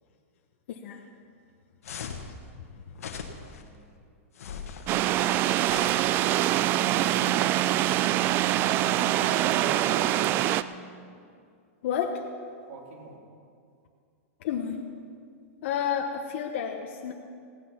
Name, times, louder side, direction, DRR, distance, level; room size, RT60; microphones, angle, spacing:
voice 1, 0.7-1.0 2.0-2.2 2.7-2.8 10.0-10.1 11.8-12.2 14.4-14.8 15.6-17.1, left 8 dB, 55° left, 3 dB, 1.0 m, -31 dB
sound 1, 1.8-2.3 3.0-3.6 4.4-4.9 5.7-6.5, left 6 dB, 85° left, 1.4 m, -39 dB
voice 2, 3.4-4.0 6.7-7.8 8.2-10.5 12.7-13.2, right 3 dB, 60° right, -1 dB, 3.3 m, -41 dB
sound 2, 4.9-10.6, right 13 dB, 25° right, 0.3 m, -24 dB
16.5 x 10.5 x 5.8 m, 2.3 s
supercardioid pair, 155°, 8 cm